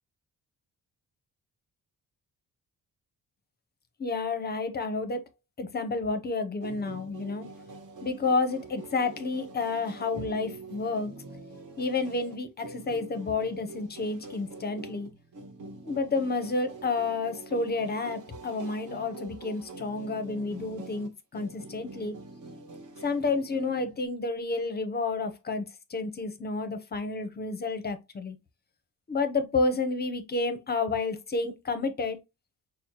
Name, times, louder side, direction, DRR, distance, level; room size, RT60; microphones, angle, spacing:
voice 1, 4.0-5.2 5.6-7.5 8.0-11.1 11.8-15.1 15.8-22.1 23.0-28.4 29.1-32.2, left 3 dB, 30° left, 0.6 m, -30 dB
sound 1, 6.6-24.0, right 2 dB, 60° right, 1.2 m, -45 dB
6.0 x 2.1 x 2.7 m
cardioid pair, 145°, 34 cm